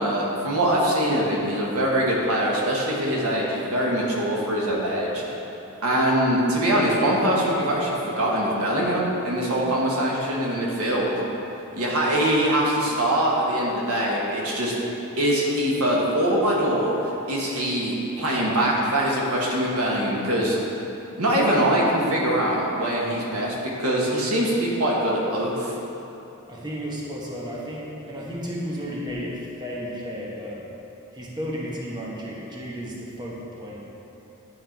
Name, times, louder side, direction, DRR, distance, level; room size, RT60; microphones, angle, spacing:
voice 1, 0.0-5.2 5.8-11.1 11.7-17.0 17.3-20.6 21.2-25.7, right 1 dB, 90° right, -3 dB, 1.4 m, -23 dB
voice 2, 10.9-11.3 26.5-30.6 31.1-33.8, equal, 20° right, -5 dB, 1.1 m, -33 dB
10.5 x 4.4 x 4.5 m, 2.9 s
head